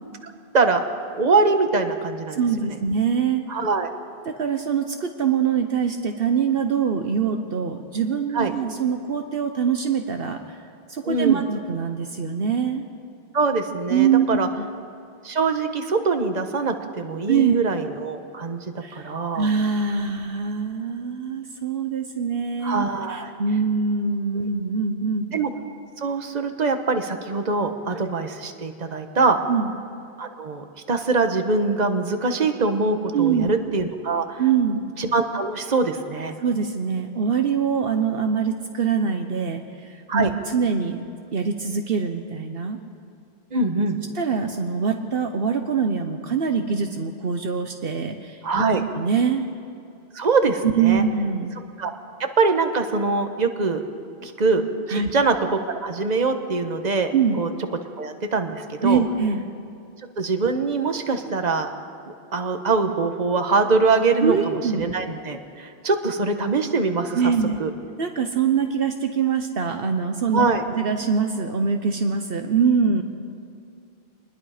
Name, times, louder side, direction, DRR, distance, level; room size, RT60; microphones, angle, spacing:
voice 1, 1.1-2.4 2.7-2.8 3.5-3.9 8.3-8.5 11.0-11.4 13.3-14.5 15.2-18.6 18.9-19.5 22.6-23.3 24.3-24.5 25.3-25.5 26.0-29.4 30.2-34.4 35.0-36.3 40.1-40.3 43.5-44.0 48.4-48.8 50.1-51.0 51.8-51.9 52.4-53.8 54.2-57.5 58.0-59.0 60.2-61.7 62.3-67.3 67.6-67.7 70.3-70.6, right 4 dB, 45° right, 6 dB, 1.3 m, -23 dB
voice 2, 2.3-3.4 4.4-10.6 10.9-12.8 13.9-14.3 14.6-14.7 17.3-17.6 18.8-25.3 29.5-29.7 33.1-33.5 34.4-34.8 36.4-41.0 41.3-42.8 44.1-48.7 48.9-49.5 50.7-51.5 54.9-55.1 57.1-57.4 58.8-59.4 64.2-64.8 67.1-67.6 68.0-70.5 70.8-73.0, right 6 dB, 65° right, 5 dB, 1.1 m, -23 dB
25.0 x 20.5 x 5.0 m, 2.6 s
omnidirectional pair, 1.0 m